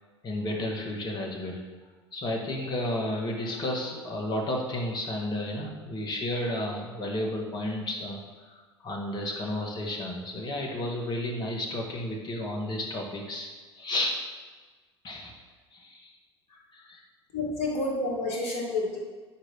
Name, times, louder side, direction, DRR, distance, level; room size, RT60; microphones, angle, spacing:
voice 1, 0.2-1.6 2.1-13.5 13.8-14.1 15.0-15.4 15.7-16.1 16.5-17.0 17.4-17.7, left 1 dB, 30° left, 0 dB, 1.4 m, -32 dB
voice 2, 17.3-19.0, left 2 dB, 50° left, -1 dB, 1.7 m, -29 dB
8.3 x 4.6 x 3.0 m, 1.4 s
figure-of-eight pair, 70°, 14 cm